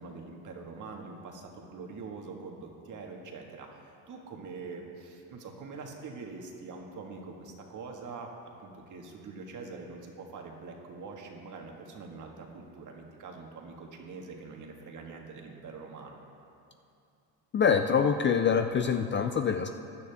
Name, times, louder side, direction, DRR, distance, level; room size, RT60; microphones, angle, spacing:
voice 1, 0.0-16.2, right 4 dB, 50° right, 1 dB, 1.7 m, -44 dB
voice 2, 17.5-19.7, left 6 dB, 30° left, 7 dB, 0.4 m, -25 dB
16.0 x 10.5 x 3.5 m, 2.6 s
cardioid pair, 105°, 40 cm